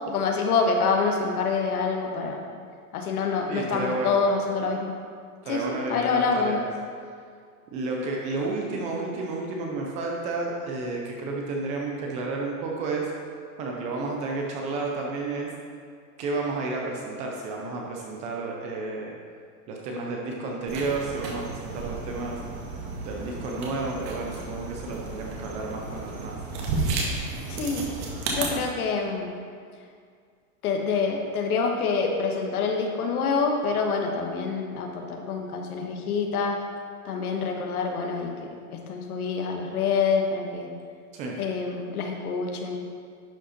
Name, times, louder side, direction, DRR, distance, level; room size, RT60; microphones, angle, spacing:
voice 1, 0.0-2.4 2.9-4.9 5.4-6.6 27.5-27.9 28.3-29.3 30.6-36.6 37.0-40.7 41.4-42.8, left 4 dB, 85° left, 2 dB, 1.5 m, -26 dB
voice 2, 3.5-4.2 5.4-6.6 7.7-13.1 13.6-15.5 16.2-19.1 19.7-22.4 23.0-26.3 41.1-41.4, right 3 dB, 15° right, -1 dB, 0.4 m, -31 dB
sound 1, 20.7-28.5, right 3 dB, 45° right, 1.8 m, -33 dB
11.0 x 5.2 x 4.2 m, 2.1 s
supercardioid pair, 160°, 43 cm